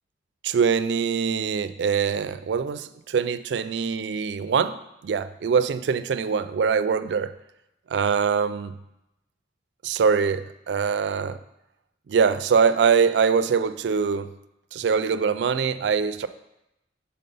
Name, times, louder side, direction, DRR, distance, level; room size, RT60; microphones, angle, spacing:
voice 1, 0.4-7.3 7.9-8.7 9.8-11.4 12.1-14.3 14.7-16.3, right 6 dB, 75° right, 12 dB, 0.3 m, -23 dB
6.5 x 4.0 x 5.4 m, 0.90 s
head